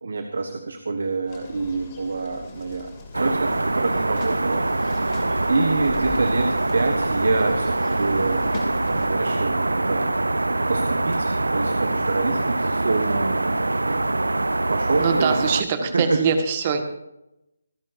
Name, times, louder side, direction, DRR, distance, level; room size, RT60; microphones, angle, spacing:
voice 1, 0.0-2.9 3.1-8.5 8.8-10.1 10.4-13.6 13.8-14.1 14.7-15.4 15.8-16.2, right 3 dB, 60° right, 6 dB, 1.6 m, -26 dB
sound 1, 1.3-9.1, left 2 dB, 25° left, 2.8 m, -40 dB
sound 2, 3.1-15.6, right 2 dB, 80° right, 0.6 m, -24 dB
voice 2, 15.0-16.8, right 6 dB, 30° right, 6 dB, 1.8 m, -23 dB
28.0 x 11.0 x 2.7 m, 0.86 s
figure-of-eight pair, 150°, 0 cm